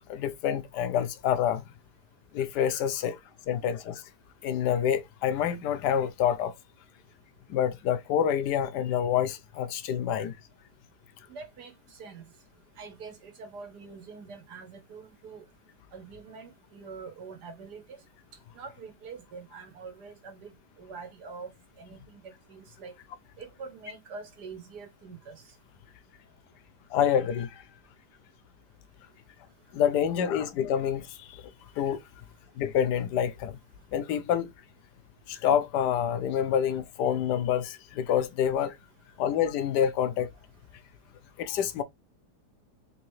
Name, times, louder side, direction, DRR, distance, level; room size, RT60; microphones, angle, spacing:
voice 1, 0.1-1.7 2.3-3.2 3.5-4.0 4.4-6.5 7.5-10.3 26.9-27.6 29.7-31.4 31.8-32.0 32.6-33.6 33.9-34.5 35.3-38.7 39.2-40.3 41.4-41.8, left 9 dB, 85° left, 1.2 m, -27 dB
voice 2, 11.3-12.3 12.8-15.4 15.9-18.0 18.5-21.5 21.8-22.9 23.4-25.4, right 5 dB, 75° right, 1.5 m, -45 dB
3.8 x 3.1 x 3.1 m
omnidirectional pair, 1.8 m